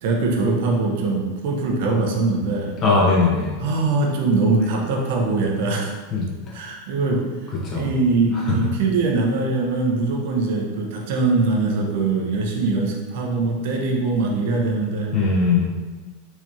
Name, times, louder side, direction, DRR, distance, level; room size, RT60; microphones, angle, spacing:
voice 1, 0.0-2.8 3.6-5.9 6.5-7.3 7.7-15.1, right 3 dB, 60° right, 0 dB, 0.8 m, -22 dB
voice 2, 2.8-3.5 6.1-6.3 7.5-7.9 8.3-8.5 15.1-15.6, left 4 dB, 40° left, -3 dB, 1.4 m, -19 dB
4.6 x 3.5 x 2.9 m, 1.3 s
hypercardioid pair, 90°, 0 cm